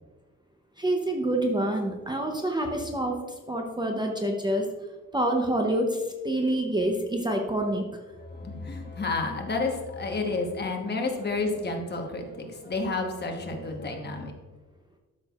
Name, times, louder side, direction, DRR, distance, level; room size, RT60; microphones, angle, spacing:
voice 1, 0.8-4.7 5.1-7.9, right 1 dB, 15° right, 2 dB, 0.6 m, -27 dB
voice 2, 8.2-14.3, left 3 dB, 35° left, 2 dB, 1.1 m, -30 dB
12.0 x 6.1 x 2.4 m, 1.2 s
wide cardioid pair, 155°, 30 cm